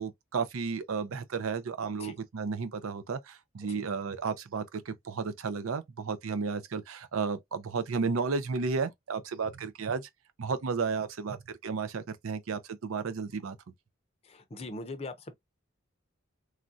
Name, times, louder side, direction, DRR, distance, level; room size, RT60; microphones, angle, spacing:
voice 1, 0.0-10.1 10.4-13.6, right 5 dB, 85° right, 0.5 m, -33 dB
voice 2, 14.2-15.3, left 2 dB, 30° left, 0.5 m, -41 dB
3.1 x 2.4 x 2.6 m
head